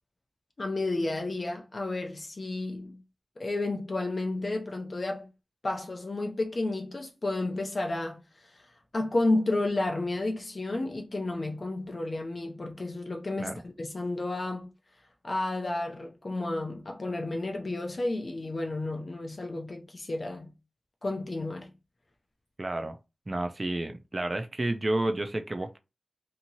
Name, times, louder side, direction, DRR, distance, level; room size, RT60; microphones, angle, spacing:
voice 1, 0.6-3.0 3.4-5.3 5.6-8.7 8.9-14.7 15.2-20.5 21.0-21.7, left 2 dB, 45° left, 0.4 m, -31 dB
voice 2, 22.6-23.0 23.3-25.8, right 1 dB, 30° right, 0.3 m, -30 dB
2.8 x 2.7 x 2.6 m
wide cardioid pair, 100°, 0 cm